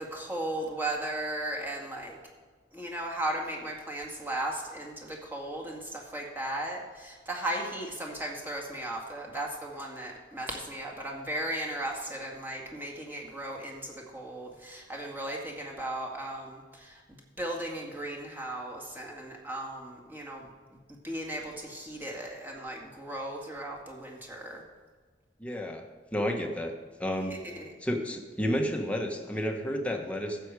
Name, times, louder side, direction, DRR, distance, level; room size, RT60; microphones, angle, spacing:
voice 1, 0.0-2.2 2.7-17.0 17.4-20.5 20.9-24.6 27.3-27.7, right 1 dB, 10° right, -1 dB, 2.0 m, -36 dB
voice 2, 25.4-25.8 26.1-26.7 27.0-27.3 27.8-30.4, equal, 10° left, 2 dB, 1.2 m, -31 dB
12.0 x 8.0 x 4.8 m, 1.4 s
head